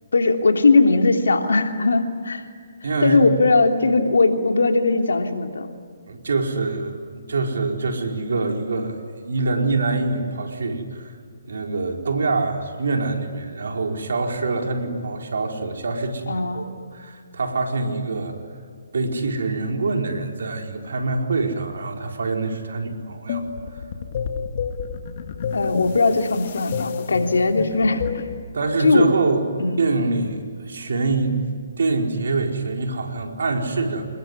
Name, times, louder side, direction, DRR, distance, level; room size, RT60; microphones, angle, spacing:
voice 1, 0.1-2.5 3.0-5.7 16.3-16.7 25.5-28.2 28.8-29.1 29.6-29.9, left 3 dB, 75° left, 4 dB, 3.2 m, -19 dB
voice 2, 2.8-3.2 6.1-11.1 11.4-18.4 18.9-23.4 28.5-29.5 29.8-31.4 31.8-34.1, right 3 dB, 70° right, 2 dB, 4.8 m, -25 dB
sound 1, 23.3-28.4, left 6 dB, 50° left, 2.2 m, -29 dB
27.5 x 21.5 x 9.8 m, 2.1 s
figure-of-eight pair, 140°, 0 cm